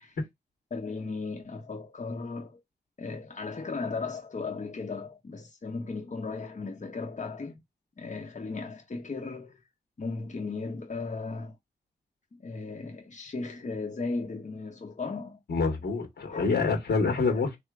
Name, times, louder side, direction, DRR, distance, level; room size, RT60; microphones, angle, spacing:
voice 1, 0.7-2.6 3.0-7.6 8.0-9.6 10.0-11.6 12.3-15.4 16.2-16.6 17.3-17.4, left 4 dB, 45° left, 1.3 m, -36 dB
voice 2, 15.5-17.6, left 4 dB, 85° left, 2.0 m, -26 dB
3.4 x 3.1 x 4.8 m
cardioid pair, 50°, 17 cm